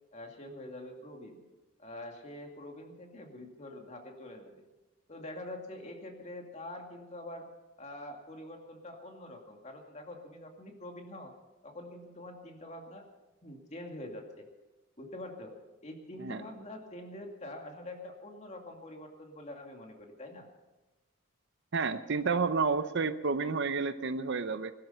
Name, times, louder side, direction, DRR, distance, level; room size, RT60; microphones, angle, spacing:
voice 1, 0.1-1.4 1.8-4.7 5.1-7.5 7.8-11.3 11.6-13.0 13.4-14.5 15.0-15.6 15.8-20.5, left 1 dB, 35° left, 3 dB, 2.4 m, -45 dB
voice 2, 21.7-24.7, right 4 dB, 55° right, 11 dB, 0.7 m, -30 dB
20.5 x 12.5 x 5.6 m, 1.1 s
head